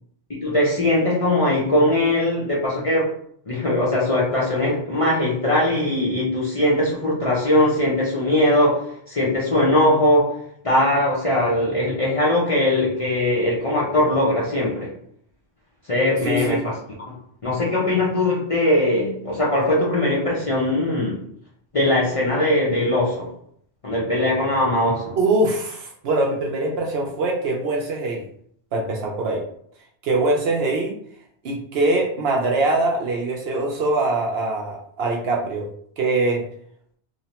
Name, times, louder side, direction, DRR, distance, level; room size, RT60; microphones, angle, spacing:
voice 1, 0.4-3.1 3.5-10.4 10.6-14.9 15.9-16.8 17.1-17.2 17.4-21.2 21.7-23.3 23.8-25.2, left 1 dB, 40° left, -7 dB, 0.5 m, -20 dB
voice 2, 16.2-16.6 25.2-28.2 28.7-29.4 30.0-31.0 31.4-35.7 36.0-36.4, right 2 dB, 65° right, 0 dB, 0.7 m, -23 dB
3.0 x 2.1 x 2.8 m, 0.64 s
omnidirectional pair, 1.2 m